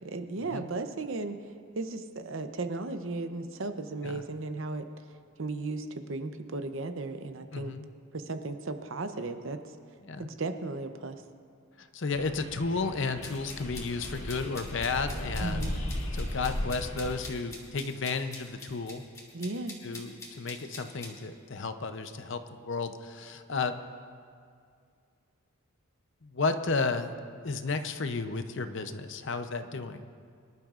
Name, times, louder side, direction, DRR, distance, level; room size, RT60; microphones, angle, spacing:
voice 1, 0.0-1.4 1.7-4.9 5.4-7.7 8.1-9.6 10.2-11.2 15.4-15.7 19.3-19.8, right 3 dB, 65° right, 8 dB, 0.7 m, -35 dB
voice 2, 7.5-7.9 10.0-10.3 11.8-15.8 16.1-19.0 19.8-23.8 26.2-27.1 27.4-30.1, left 4 dB, 55° left, 8 dB, 0.7 m, -33 dB
sound 1, 12.1-17.3, left 1 dB, 80° left, 1.7 m, -36 dB
sound 2, 13.2-21.1, left 2 dB, 15° left, 1.8 m, -45 dB
24.5 x 12.0 x 2.5 m, 2.2 s
head